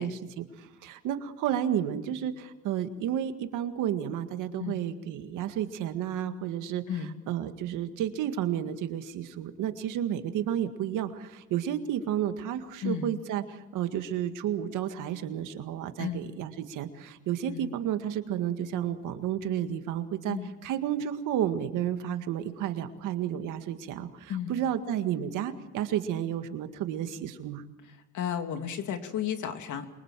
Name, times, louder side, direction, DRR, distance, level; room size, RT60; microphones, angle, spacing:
voice 1, 0.0-6.8 7.3-20.4 20.6-27.6, right 10 dB, 90° right, 8 dB, 1.9 m, -31 dB
voice 2, 12.8-13.1 16.0-16.2 17.5-17.7 20.3-20.5 24.3-24.6 27.9-29.9, left 8 dB, 75° left, 6 dB, 2.8 m, -33 dB
28.0 x 23.5 x 7.6 m, 1.0 s
cardioid pair, 90°, 30 cm